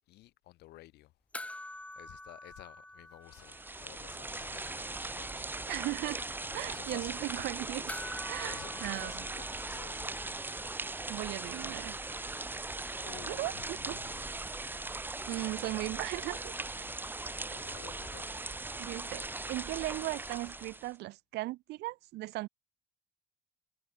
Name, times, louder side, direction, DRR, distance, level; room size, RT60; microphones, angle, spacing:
voice 1, 0.1-1.1 2.0-5.7 6.5-7.5 8.4-10.2 13.0-14.2 16.8-17.2 17.5-18.5, left 17 dB, 80° left, 1.7 m, -52 dB
sound 1, 1.3-4.0 4.3-4.4 7.9-10.5 12.6-12.7, left 1 dB, 10° left, 2.3 m, -46 dB
sound 2, 3.3-20.9, right 2 dB, 10° right, 1.0 m, -39 dB
voice 2, 5.7-6.2 6.5-7.9 8.3-9.3 11.1-12.0 13.2-14.0 15.3-16.5 18.8-22.5, right 18 dB, 80° right, 1.1 m, -37 dB
cardioid pair, 110°, 17 cm